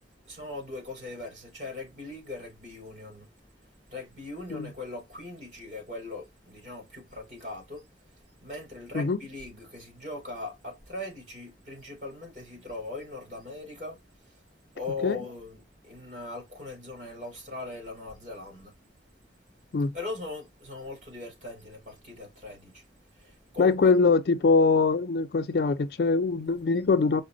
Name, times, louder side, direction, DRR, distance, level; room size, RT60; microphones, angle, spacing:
voice 1, 0.2-3.3 3.9-7.8 8.4-14.0 14.7-18.7 19.9-22.8 23.2-23.9, left 2 dB, 45° right, 2.9 m, -40 dB
voice 2, 23.6-27.2, left 4 dB, 60° left, 0.4 m, -23 dB
4.9 x 2.1 x 3.7 m
head